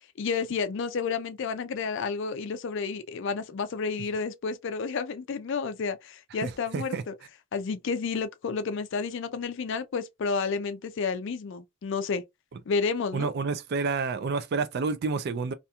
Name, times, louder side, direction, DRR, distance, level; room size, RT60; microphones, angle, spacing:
voice 1, 0.2-7.1 7.5-12.2 12.7-13.3, left 5 dB, 55° left, 0.4 m, -31 dB
voice 2, 6.4-7.0 13.1-15.5, right 4 dB, 45° right, 0.3 m, -29 dB
2.8 x 2.4 x 2.2 m
head